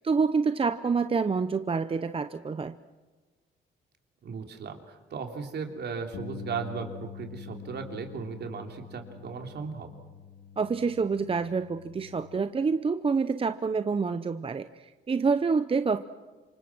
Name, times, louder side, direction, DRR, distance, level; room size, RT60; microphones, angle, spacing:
voice 1, 0.0-2.7 10.6-16.0, right 5 dB, 25° right, 11 dB, 0.8 m, -27 dB
voice 2, 4.2-10.0, right 5 dB, 55° right, 4 dB, 3.4 m, -37 dB
Bass guitar, 6.1-12.4, left 7 dB, 80° left, 1.5 m, -45 dB
27.5 x 24.5 x 6.2 m, 1.3 s
cardioid pair, 90°, 20 cm